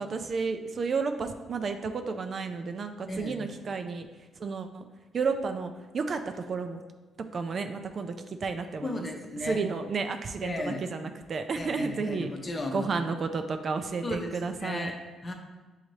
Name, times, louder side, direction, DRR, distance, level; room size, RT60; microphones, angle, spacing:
voice 1, 0.0-4.1 4.4-4.8 5.1-6.8 7.3-8.1 8.4-9.1 9.4-12.3 12.7-14.9, right 4 dB, 50° right, 7 dB, 0.3 m, -32 dB
voice 2, 8.8-9.6 10.4-10.8 11.6-12.9 14.0-15.3, left 2 dB, 35° left, 3 dB, 0.7 m, -35 dB
6.4 x 2.7 x 3.0 m, 1.2 s
supercardioid pair, 70°, 0 cm